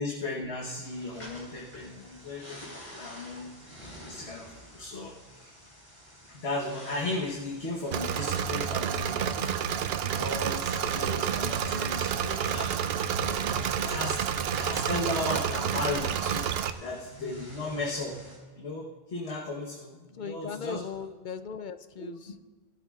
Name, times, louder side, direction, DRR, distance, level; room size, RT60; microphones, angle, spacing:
voice 1, 0.0-5.6 6.3-18.2 18.6-20.8 22.0-22.1, left 2 dB, 75° left, -2 dB, 1.5 m, -36 dB
sound 1, 0.8-18.4, equal, 40° left, 4.3 m, -49 dB
Engine / Mechanisms, 7.9-16.7, right 8 dB, 70° right, 0.8 m, -29 dB
voice 2, 13.1-13.6 20.1-22.4, left 6 dB, 55° left, 11 dB, 0.6 m, -39 dB
18.5 x 12.5 x 2.4 m, 1.3 s
omnidirectional pair, 1.1 m